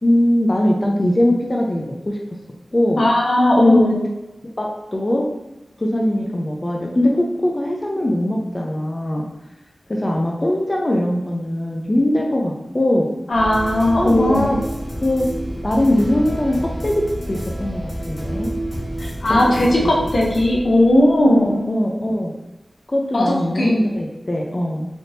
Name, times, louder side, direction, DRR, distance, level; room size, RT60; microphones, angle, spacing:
voice 1, 0.0-2.2 2.7-3.0 3.6-4.0 4.6-5.2 5.8-9.3 9.9-13.1 13.9-14.6 15.0-15.3 15.6-16.9 17.3-18.5 19.3-19.4 19.8-20.1 21.3-22.3 22.9-24.9, left 1 dB, 35° left, -1 dB, 0.5 m, -21 dB
voice 2, 3.0-4.0 13.3-14.5 19.0-21.6 23.1-23.7, left 1 dB, 80° left, -3 dB, 0.7 m, -17 dB
sound 1, 13.3-21.4, right 1 dB, 5° left, 1.1 m, -29 dB
3.5 x 2.7 x 2.6 m, 0.99 s
wide cardioid pair, 50°, 0 cm